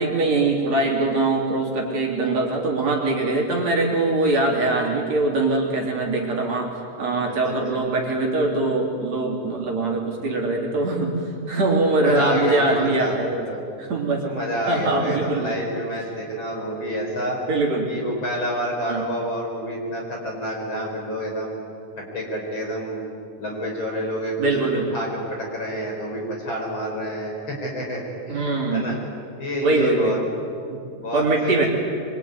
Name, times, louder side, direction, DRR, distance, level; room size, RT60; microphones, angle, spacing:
voice 1, 0.0-11.2 11.5-13.5 13.8-14.2 14.7-15.5 17.5-17.9 18.9-19.1 24.4-25.0 28.3-28.9 29.6-30.2 31.1-31.7, right 2 dB, 60° right, 0 dB, 4.5 m, -22 dB
voice 2, 12.0-13.2 13.5-13.6 14.2-17.4 17.9-21.6 22.0-23.0 23.4-29.0 29.4-30.2 30.9-31.7, equal, 40° left, 0 dB, 5.6 m, -29 dB
25.0 x 23.5 x 9.6 m, 2.5 s
omnidirectional pair, 3.5 m